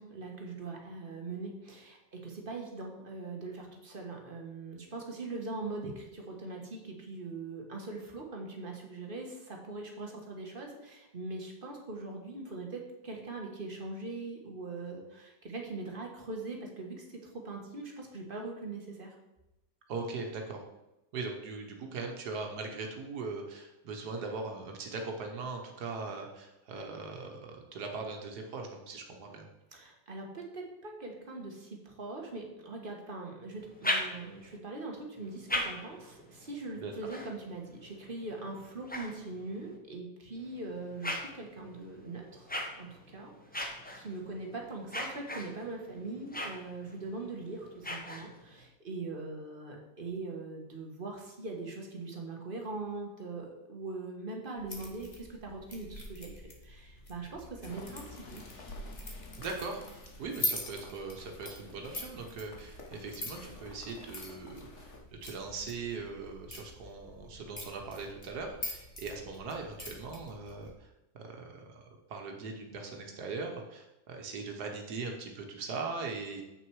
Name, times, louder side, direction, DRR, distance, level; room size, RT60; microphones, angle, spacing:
voice 1, 0.0-17.2 17.4-19.1 29.7-42.5 42.8-58.4, right 3 dB, 35° right, 1 dB, 1.5 m, -41 dB
voice 2, 19.9-20.6 21.1-29.5 36.8-36.9 59.4-64.9 65.2-70.9 71.1-76.4, right 4 dB, 80° right, 2 dB, 1.6 m, -40 dB
sound 1, 33.6-34.6 35.2-39.8 40.4-48.6, left 1 dB, 10° left, 0.7 m, -40 dB
sound 2, 54.6-70.7, left 1 dB, 30° left, 1.5 m, -44 dB
sound 3, 57.7-65.0, left 4 dB, 50° left, 1.5 m, -52 dB
7.7 x 6.1 x 4.7 m, 0.94 s
omnidirectional pair, 1.7 m